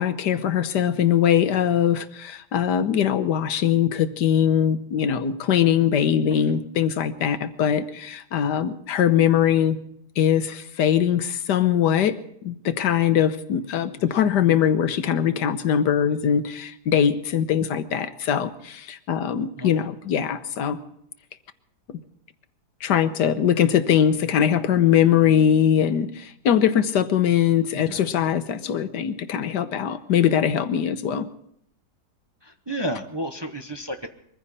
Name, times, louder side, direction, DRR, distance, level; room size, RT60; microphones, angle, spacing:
voice 1, 0.0-9.8 10.2-12.2 12.4-20.8 21.9-22.0 22.8-31.3, left 9 dB, 90° left, 11 dB, 1.6 m, -21 dB
voice 2, 19.5-19.9 27.7-28.0 32.4-34.1, right 1 dB, 20° right, 5 dB, 0.8 m, -32 dB
23.0 x 15.0 x 4.2 m, 0.70 s
omnidirectional pair, 1.8 m